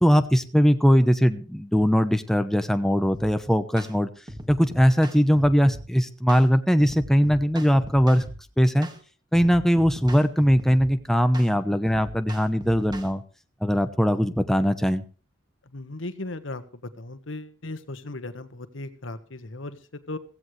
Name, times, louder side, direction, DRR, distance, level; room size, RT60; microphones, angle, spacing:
voice 1, 0.0-4.1 4.5-8.2 8.6-8.9 9.3-13.2 13.6-15.0, equal, ahead, 8 dB, 0.9 m, -20 dB
sound 1, 3.1-3.4 3.8-3.9 4.3-5.9 6.3-6.5 6.8-8.4 8.8-9.0 9.3-10.9 11.3-11.5 11.9-13.1, right 1 dB, 20° right, 1.9 m, -39 dB
voice 2, 15.7-16.6 17.0-20.2, left 2 dB, 75° left, 10 dB, 1.4 m, -37 dB
16.0 x 16.0 x 3.3 m, 0.36 s
head